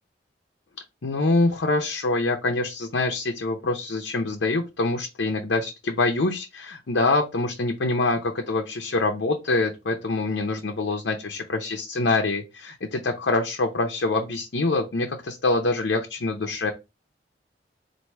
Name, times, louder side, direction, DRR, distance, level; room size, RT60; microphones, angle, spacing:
voice 1, 1.0-16.7, left 2 dB, 75° left, 3 dB, 0.7 m, -25 dB
4.7 x 2.6 x 4.2 m, 0.25 s
head